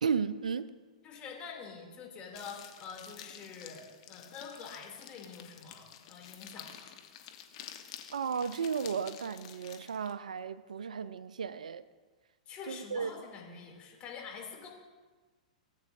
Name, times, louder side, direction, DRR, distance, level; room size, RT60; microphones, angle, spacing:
voice 1, 0.0-0.7 8.1-11.8 12.7-13.1, right 6 dB, 75° right, 0.4 m, -34 dB
voice 2, 1.0-6.9 12.5-14.7, left 6 dB, 30° left, 2.6 m, -46 dB
sound 1, 2.4-10.1, left 10 dB, 50° left, 1.0 m, -50 dB
17.0 x 8.3 x 2.6 m
figure-of-eight pair, 105°, 4 cm